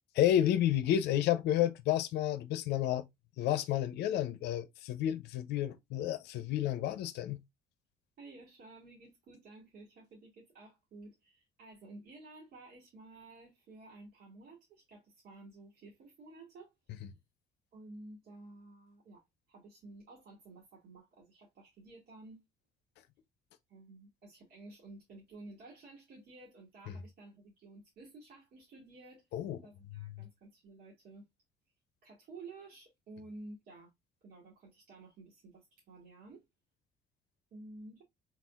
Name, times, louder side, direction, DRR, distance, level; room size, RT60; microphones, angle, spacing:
voice 1, 0.1-3.1 3.4-7.4 29.3-29.6, left 11 dB, 80° left, 0.6 m, -30 dB
voice 2, 8.2-17.0 17.7-22.4 23.7-29.2 29.6-31.3 32.0-33.9 34.2-36.4 37.5-38.0, right 2 dB, 65° right, 2.1 m, -53 dB
4.3 x 4.1 x 2.4 m
cardioid pair, 110°, 17 cm